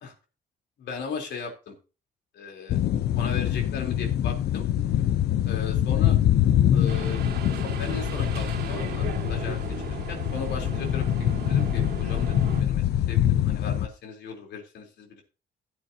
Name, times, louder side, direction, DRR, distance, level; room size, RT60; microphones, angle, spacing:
voice 1, 0.8-1.7 2.3-2.8 3.2-4.7 5.4-6.2 6.7-7.2 7.8-9.6 9.8-15.2, left 5 dB, 85° left, 3 dB, 3.4 m, -37 dB
sound 1, 2.7-13.9, left 11 dB, 70° left, 0.6 m, -24 dB
sound 2, 6.9-12.6, right 7 dB, 70° right, 2.1 m, -37 dB
16.0 x 8.7 x 2.7 m, 0.31 s
cardioid pair, 155°, 17 cm